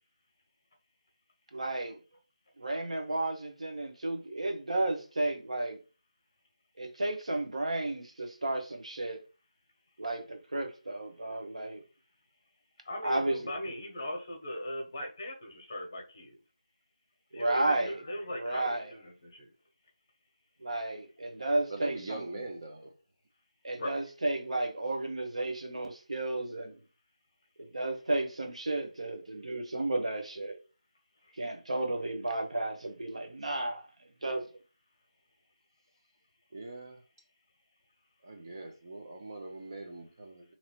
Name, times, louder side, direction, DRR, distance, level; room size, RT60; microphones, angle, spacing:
voice 1, 1.5-2.0 2.6-5.8 6.8-9.2 10.0-11.8 13.0-13.5 17.3-18.0 18.3-18.9 20.6-22.2 23.6-26.7 27.6-30.6 31.4-33.9 34.2-34.5, right 2 dB, 65° right, 1.0 m, -33 dB
voice 2, 12.8-16.4 17.3-19.5 23.8-24.0 31.3-31.4, equal, 35° left, 1.0 m, -39 dB
voice 3, 21.7-22.9 36.5-37.0 38.2-40.5, right 2 dB, 35° right, 0.5 m, -42 dB
2.9 x 2.8 x 4.3 m
figure-of-eight pair, 170°, 4 cm